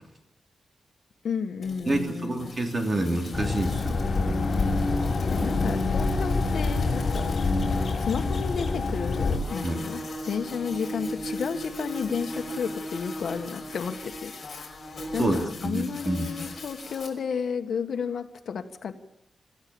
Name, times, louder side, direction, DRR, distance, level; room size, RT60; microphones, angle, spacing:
voice 1, 1.2-2.5 5.1-7.3 8.0-14.3 15.1-19.1, left 6 dB, 70° left, 7 dB, 1.6 m, -32 dB
sound 1, 1.6-17.1, left 1 dB, 30° left, 5.8 m, -39 dB
voice 2, 1.9-3.9 9.6-9.8 15.2-16.3, right 1 dB, 30° right, 3 dB, 3.2 m, -27 dB
sound 2, 3.3-9.4, left 3 dB, 45° left, 6.2 m, -26 dB
27.0 x 15.0 x 7.1 m, 0.87 s
wide cardioid pair, 175°, 0 cm